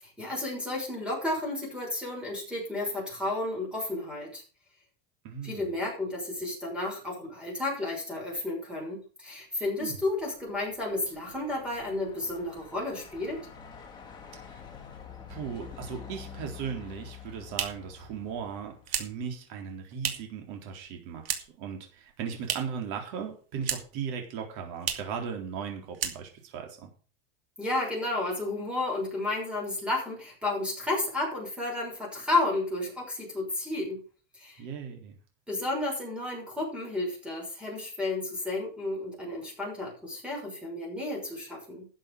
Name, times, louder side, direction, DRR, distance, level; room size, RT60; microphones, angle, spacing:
voice 1, 0.0-4.4 5.4-13.4 27.6-34.0 34.4-34.6 35.5-41.9, left 2 dB, 5° right, -1 dB, 6.3 m, -32 dB
voice 2, 5.2-5.7 9.8-10.0 14.5-14.6 15.3-26.9 34.6-35.1, right 7 dB, 55° right, 3 dB, 3.9 m, -37 dB
Truck, 9.8-19.2, left 7 dB, 15° left, 3.4 m, -48 dB
sound 1, 17.0-20.4 20.7-21.7 22.0-22.9 23.2-24.1 24.3-24.4 24.8-25.2 25.5-25.7 25.9-26.6, right 9 dB, 85° right, 2.6 m, -35 dB
12.0 x 7.6 x 6.4 m, 0.37 s
supercardioid pair, 140°, 29 cm